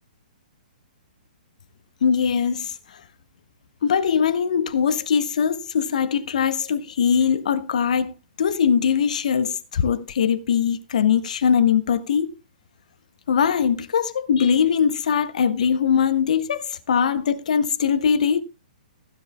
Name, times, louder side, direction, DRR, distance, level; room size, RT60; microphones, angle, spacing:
voice 1, 2.0-3.0 3.8-8.1 8.4-12.3 13.3-18.4, left 7 dB, 55° left, 1.4 m, -21 dB
16.0 x 9.6 x 3.6 m
figure-of-eight pair, 115°, 5 cm